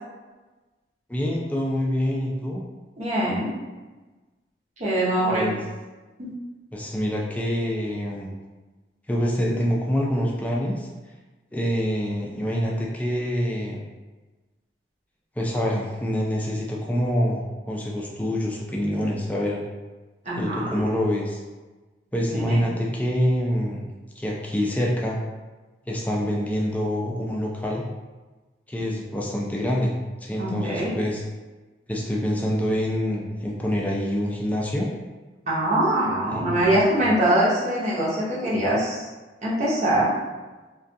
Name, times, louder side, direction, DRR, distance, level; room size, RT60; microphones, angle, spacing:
voice 1, 1.1-2.6 5.3-5.6 6.7-8.3 9.1-10.9 11.5-13.8 15.4-19.6 20.4-21.4 22.1-23.9 24.2-25.2 25.9-27.8 28.7-29.9 30.2-31.2 31.9-34.9 36.3-37.1, equal, 10° left, -3 dB, 0.3 m, -26 dB
voice 2, 3.0-3.5 4.8-5.5 6.2-6.3 20.2-20.8 22.3-22.6 30.4-31.0 35.5-39.0 39.4-40.1, right 1 dB, 40° right, -7 dB, 0.7 m, -23 dB
2.3 x 2.3 x 2.6 m, 1.2 s
head